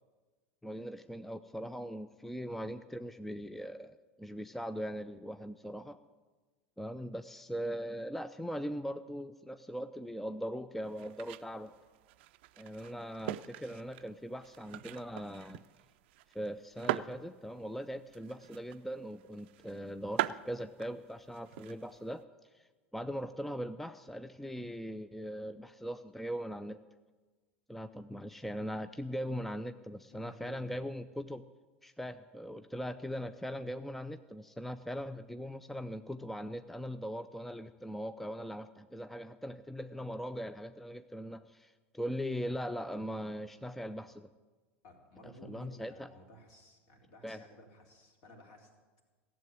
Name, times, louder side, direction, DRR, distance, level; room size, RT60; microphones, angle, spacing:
voice 1, 0.6-6.0 6.8-11.7 12.6-15.6 16.3-22.3 22.5-22.7 22.9-26.8 27.7-31.4 31.8-44.3 45.2-46.1 47.2-47.4, equal, 5° left, 11 dB, 0.5 m, -40 dB
Stacking Fuelwood, 10.8-22.2, right 15 dB, 60° right, 0.5 m, -42 dB
voice 2, 30.1-30.9 44.8-48.7, equal, 55° left, 1 dB, 3.3 m, -55 dB
15.5 x 7.7 x 9.4 m, 1.3 s
figure-of-eight pair, 80°, 7 cm